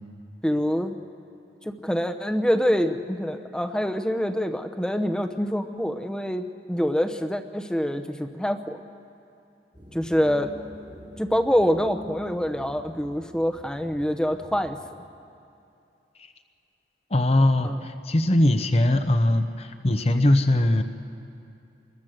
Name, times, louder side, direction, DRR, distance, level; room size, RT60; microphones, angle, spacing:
voice 1, 0.4-1.0 1.6-8.8 9.9-10.5 11.2-14.8 17.6-17.8, equal, 5° left, 6 dB, 0.8 m, -25 dB
sound 1, 9.7-14.8, equal, 25° right, 1.6 m, -44 dB
voice 2, 17.1-20.8, left 1 dB, 35° left, 8 dB, 0.7 m, -21 dB
27.5 x 21.5 x 6.5 m, 2.6 s
head